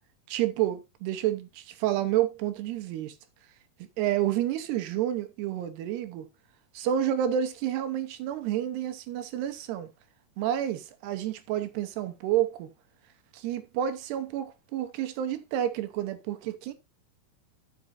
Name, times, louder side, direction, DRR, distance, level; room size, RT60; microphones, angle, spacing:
voice 1, 0.3-3.2 4.0-6.3 6.7-9.9 10.4-12.7 13.3-16.7, right 11 dB, 85° right, 3.1 m, -29 dB
13.5 x 6.0 x 2.7 m
omnidirectional pair, 4.6 m